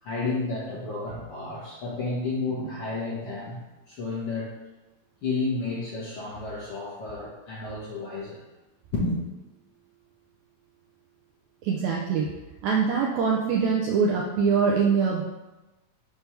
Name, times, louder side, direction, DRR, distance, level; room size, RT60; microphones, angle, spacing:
voice 1, 0.0-3.6 3.9-4.5 5.2-8.4 8.9-9.2, left 3 dB, 60° left, -7 dB, 1.7 m, -31 dB
voice 2, 11.6-12.3 12.6-15.2, right 5 dB, 85° right, -2 dB, 1.7 m, -23 dB
6.1 x 3.4 x 5.6 m, 1.1 s
omnidirectional pair, 3.9 m